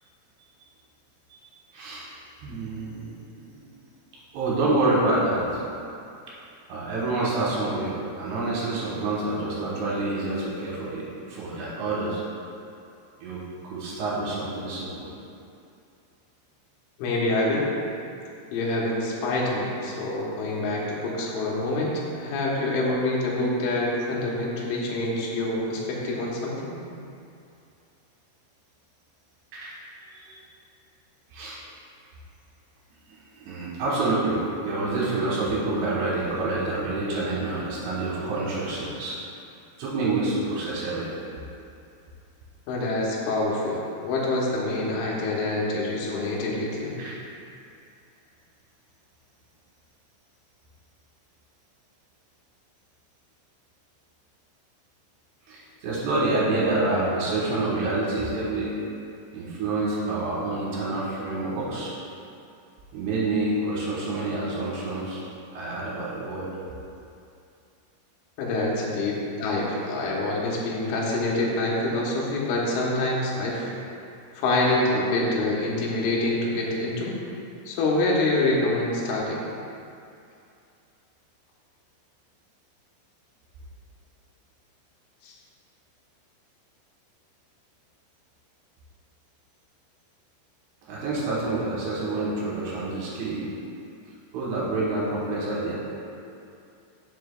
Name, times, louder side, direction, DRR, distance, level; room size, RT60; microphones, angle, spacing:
voice 1, 1.7-2.1 2.4-3.1 4.3-5.6 6.7-12.2 13.2-15.1 29.5-29.7 30.1-30.4 31.3-31.6 33.1-39.2 39.8-41.3 47.0-47.2 55.5-58.7 59.3-61.9 62.9-65.2 65.5-66.5 90.9-93.5 94.3-95.8, right 2 dB, 70° right, -6 dB, 3.0 m, -27 dB
voice 2, 17.0-17.7 18.5-26.8 42.7-47.0 68.4-73.7 74.4-77.2 77.7-79.4 85.2-85.3, left 2 dB, 75° left, -4 dB, 3.3 m, -26 dB
10.5 x 6.5 x 2.3 m, 2.5 s
omnidirectional pair, 5.7 m